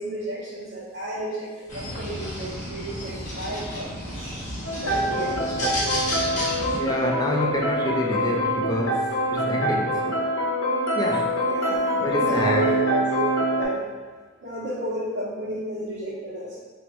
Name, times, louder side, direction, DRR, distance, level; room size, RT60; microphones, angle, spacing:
voice 1, 0.0-4.5 4.8-5.9 11.4-11.8 12.1-13.2 13.6-13.9 14.4-16.6, right 1 dB, 55° right, -8 dB, 0.6 m, -32 dB
sound 1, 1.7-6.8, equal, 40° left, 0.7 m, -31 dB
sound 2, 4.6-13.7, equal, 90° left, 0.8 m, -25 dB
voice 2, 6.7-10.2 11.0-11.4 12.0-12.7, left 1 dB, 20° left, 0 dB, 0.3 m, -27 dB
4.4 x 2.0 x 3.0 m, 1.4 s
head